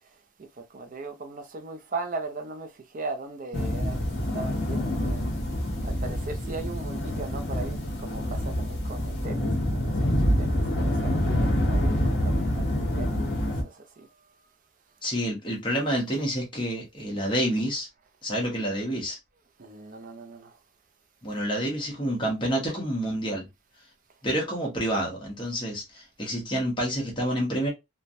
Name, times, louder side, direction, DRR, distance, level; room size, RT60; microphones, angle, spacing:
voice 1, 0.4-14.1 19.6-20.6, right 3 dB, 40° right, 0.5 m, -39 dB
sound 1, 3.5-13.6, equal, 55° left, 1.1 m, -26 dB
voice 2, 15.0-17.9 18.2-19.2 21.2-23.5 24.2-27.7, equal, 20° left, 1.0 m, -28 dB
3.2 x 2.2 x 2.5 m
head